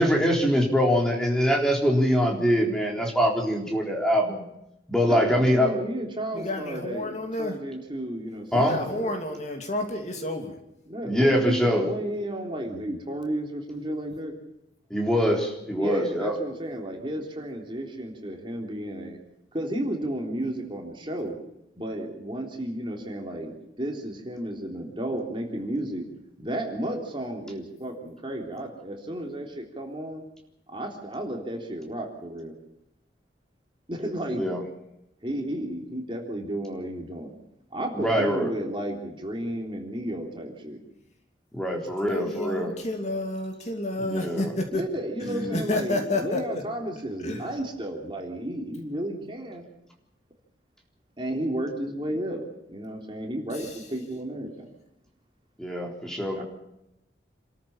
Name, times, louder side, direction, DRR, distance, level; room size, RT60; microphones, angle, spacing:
voice 1, 0.0-4.4 4.9-5.7 8.5-8.8 11.0-11.9 14.9-16.3 34.4-34.6 37.9-38.5 41.5-42.7 44.0-44.5 45.2-45.6 55.6-56.4, equal, 5° left, 0 dB, 3.9 m, -23 dB
voice 2, 5.0-9.1 10.9-14.4 15.7-19.2 19.5-21.4 21.8-26.0 26.4-30.2 30.7-32.5 33.9-34.5 35.2-37.3 37.7-40.8 44.7-49.7 51.2-54.7 56.4-56.5, right 1 dB, 30° right, 1 dB, 3.5 m, -33 dB
voice 3, 6.3-7.6 8.5-10.6 41.8-44.8 45.5-46.6 47.2-47.4 53.6-53.7, left 2 dB, 40° left, 4 dB, 2.8 m, -30 dB
27.5 x 13.5 x 7.4 m, 0.85 s
head